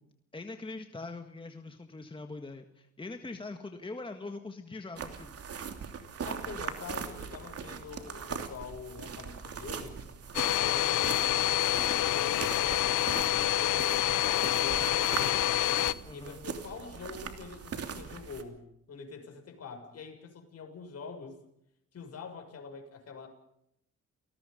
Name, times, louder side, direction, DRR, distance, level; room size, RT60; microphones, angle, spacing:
voice 1, 0.3-5.4 16.0-16.4, left 3 dB, 15° left, 6 dB, 1.8 m, -42 dB
sound 1, 5.0-18.4, right 6 dB, 50° right, 3.0 m, -41 dB
voice 2, 6.2-10.0 10.5-15.5 16.1-18.6 18.9-21.4 21.9-23.3, left 4 dB, 55° left, 4 dB, 6.8 m, -45 dB
Domestic sounds home sounds, 10.3-15.9, left 13 dB, 85° left, 0.8 m, -27 dB
30.0 x 19.5 x 5.3 m, 0.76 s
cardioid pair, 90°, 30 cm